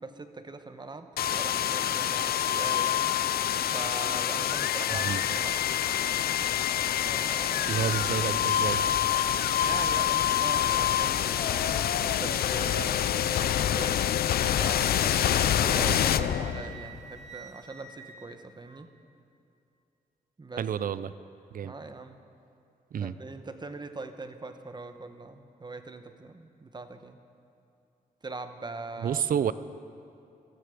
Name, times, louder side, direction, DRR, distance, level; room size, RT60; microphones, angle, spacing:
voice 1, 0.0-3.1 3.7-5.6 7.0-8.0 9.6-14.0 14.5-18.9 20.4-20.6 21.6-22.2 23.0-27.2 28.2-29.2, right 3 dB, 30° right, 8 dB, 1.1 m, -41 dB
sound 1, 1.2-17.0, left 10 dB, 80° left, 0.5 m, -26 dB
voice 2, 7.7-8.8 15.8-16.0 20.6-21.1 21.5-21.7 22.9-23.1 29.0-29.5, right 8 dB, 65° right, 15 dB, 0.6 m, -29 dB
Wind instrument woodwind instrument, 14.3-18.9, right 4 dB, 45° right, 1.5 m, -49 dB
19.5 x 13.5 x 5.1 m, 2.7 s
cardioid pair, 80°, 16 cm